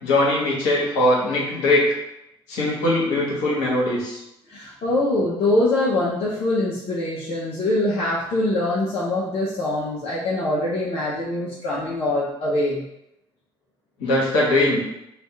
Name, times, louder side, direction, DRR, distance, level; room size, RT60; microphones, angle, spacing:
voice 1, 0.0-1.8 2.5-4.2 14.0-14.8, left 1 dB, 70° left, -5 dB, 1.1 m, -21 dB
voice 2, 4.5-12.8, left 2 dB, 50° left, -6 dB, 0.7 m, -23 dB
2.6 x 2.4 x 3.3 m, 0.83 s
figure-of-eight pair, 50°, 13 cm